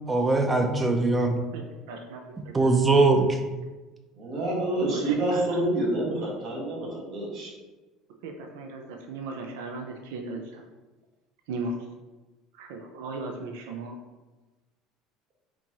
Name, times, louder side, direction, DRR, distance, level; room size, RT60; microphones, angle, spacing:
voice 1, 0.1-1.4 2.5-3.4, right 3 dB, 20° right, 5 dB, 0.6 m, -21 dB
voice 2, 1.5-2.2 2.5-2.7 4.7-5.6 8.2-10.6 11.5-11.8 12.6-14.0, right 3 dB, 80° right, 3 dB, 0.4 m, -37 dB
voice 3, 4.2-7.5, right 1 dB, 60° right, -4 dB, 1.4 m, -28 dB
4.3 x 2.9 x 2.9 m, 1.2 s
supercardioid pair, 90°, 0 cm